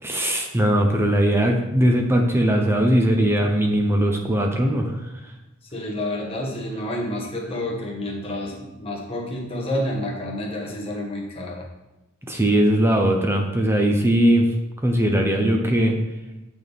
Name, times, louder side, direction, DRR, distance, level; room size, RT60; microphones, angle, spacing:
voice 1, 0.0-5.0 12.3-14.5 14.8-16.0, right 1 dB, 10° right, 2 dB, 0.7 m, -19 dB
voice 2, 5.7-11.7, left 1 dB, 25° left, -2 dB, 1.5 m, -29 dB
7.9 x 6.1 x 3.6 m, 0.97 s
head